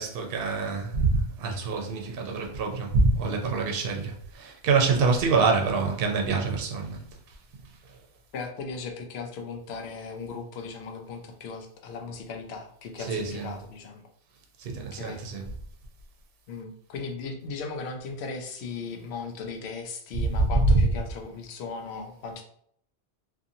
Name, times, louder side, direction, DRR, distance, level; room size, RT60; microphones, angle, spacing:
voice 1, 0.0-7.0 13.1-13.5 14.6-15.5 20.4-20.5, right 4 dB, 65° right, 1 dB, 0.8 m, -26 dB
voice 2, 8.3-14.0 14.8-15.2 16.5-22.4, left 4 dB, 80° left, 4 dB, 0.8 m, -37 dB
2.6 x 2.5 x 2.6 m, 0.64 s
omnidirectional pair, 1.1 m